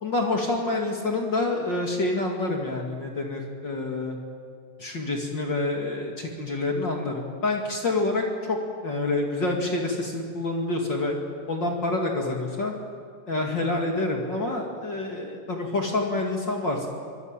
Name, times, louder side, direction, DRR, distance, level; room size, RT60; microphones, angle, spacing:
voice 1, 0.0-4.2 4.8-8.6 8.8-11.1 11.5-12.7 13.3-16.9, left 2 dB, 35° left, 1 dB, 2.1 m, -27 dB
24.5 x 19.5 x 9.0 m, 2.2 s
omnidirectional pair, 4.9 m